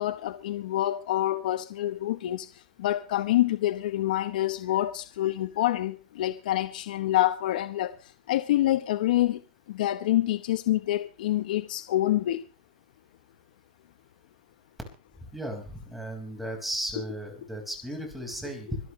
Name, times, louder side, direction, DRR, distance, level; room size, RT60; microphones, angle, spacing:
voice 1, 0.0-9.4 9.7-12.4 17.0-17.1 18.7-18.8, left 14 dB, 75° left, 1.0 m, -27 dB
voice 2, 15.2-18.8, right 1 dB, ahead, 5.1 m, -35 dB
25.5 x 12.0 x 3.2 m
supercardioid pair, 140°, 5 cm